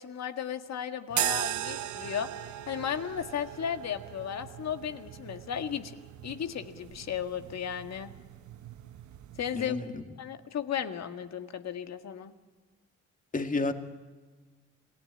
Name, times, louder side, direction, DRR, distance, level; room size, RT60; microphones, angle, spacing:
voice 1, 0.0-6.0 6.2-8.1 9.4-9.8 10.2-12.3, left 8 dB, 60° left, 8 dB, 1.8 m, -35 dB
sound 1, 1.1-9.6, right 13 dB, 70° right, 1.0 m, -38 dB
voice 2, 9.5-10.0 13.3-13.7, left 3 dB, 25° left, 6 dB, 2.3 m, -30 dB
28.0 x 17.5 x 9.9 m, 1.4 s
cardioid pair, 90°, 30 cm